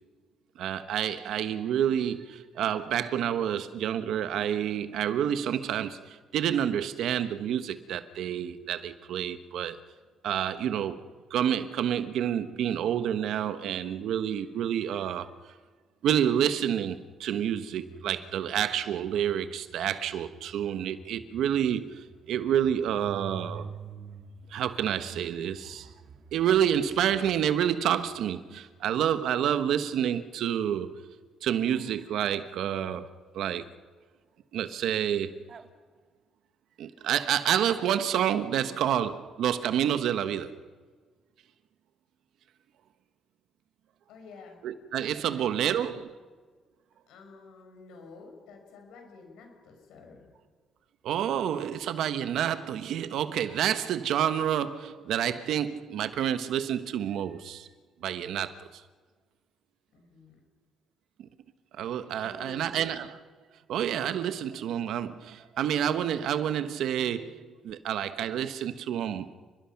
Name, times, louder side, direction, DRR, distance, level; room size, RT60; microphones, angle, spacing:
voice 1, 0.6-9.8 10.2-11.0 11.3-15.3 16.0-23.7 24.5-25.9 26.3-30.9 31.4-33.7 34.5-35.5 36.8-40.6 44.6-46.1 51.0-57.7 58.0-58.8 61.2-61.3 61.8-63.2 63.7-69.4, right 9 dB, 80° right, 1.2 m, -29 dB
sound 1, 17.4-29.0 35.1-35.2 35.5-35.7, right 5 dB, 50° right, 2.0 m, -48 dB
voice 2, 44.1-44.6 45.1-46.1 47.1-50.3 59.9-60.4 62.2-62.8, left 4 dB, 90° left, 6.2 m, -50 dB
28.5 x 22.0 x 6.0 m
cardioid pair, 90°, 0 cm